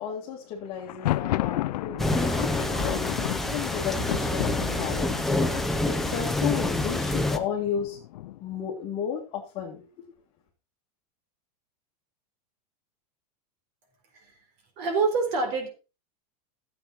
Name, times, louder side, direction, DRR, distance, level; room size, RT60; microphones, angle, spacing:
voice 1, 0.0-2.0 2.6-5.3 5.8-8.0 8.4-10.1, left 8 dB, 30° left, -3 dB, 2.3 m, -33 dB
Thunder, 0.8-8.6, left 16 dB, 90° left, 0.5 m, -33 dB
sound 1, 2.0-7.4, left 1 dB, ahead, 0.6 m, -27 dB
voice 2, 14.8-15.7, right 4 dB, 45° right, 5 dB, 4.1 m, -26 dB
14.0 x 8.5 x 4.3 m, 0.31 s
supercardioid pair, 175°, 20 cm